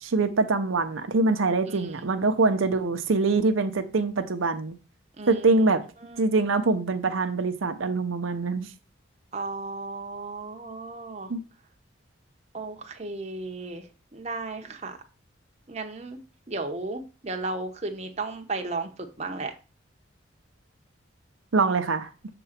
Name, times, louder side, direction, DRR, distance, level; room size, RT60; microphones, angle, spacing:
voice 1, 0.0-4.8 5.3-5.8 6.2-8.7 11.3-11.4 21.5-22.1, right 3 dB, 85° right, 0.7 m, -24 dB
voice 2, 1.7-2.1 5.2-5.6 6.0-6.3 9.3-11.3 12.5-15.0 15.7-16.2 16.5-19.5, right 3 dB, 35° right, 0.9 m, -35 dB
6.9 x 3.8 x 5.8 m
head